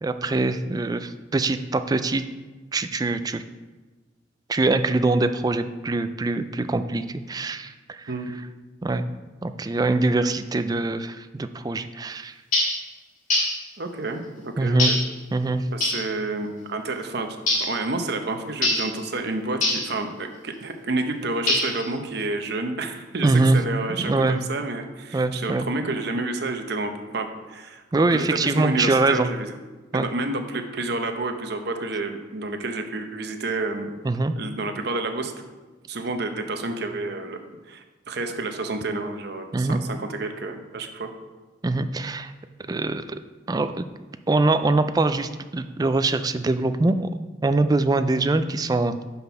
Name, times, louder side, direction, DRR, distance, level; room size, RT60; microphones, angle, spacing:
voice 1, 0.0-2.3 2.7-3.4 4.5-8.1 8.8-9.0 9.4-12.3 14.6-14.9 15.3-15.7 23.2-23.6 24.0-24.4 25.1-25.7 27.9-29.3 29.9-30.1 34.0-34.3 39.5-39.8 41.6-42.3 42.7-43.2 43.5-43.8 44.3-47.1 47.4-49.0, right 2 dB, 20° right, 10 dB, 0.3 m, -23 dB
sound 1, 12.5-12.8 13.3-13.6 14.8-15.1 15.8-16.1 17.5-17.8 18.6-18.9 19.6-19.9 21.5-21.9, left 2 dB, 40° left, 1.9 m, -23 dB
voice 2, 13.8-15.0 15.7-17.3 17.7-27.8 28.1-29.5 29.9-33.9 34.4-35.4 35.9-37.4 37.7-41.1, right 2 dB, 55° right, 6 dB, 0.8 m, -29 dB
6.1 x 5.4 x 5.6 m, 1.3 s
head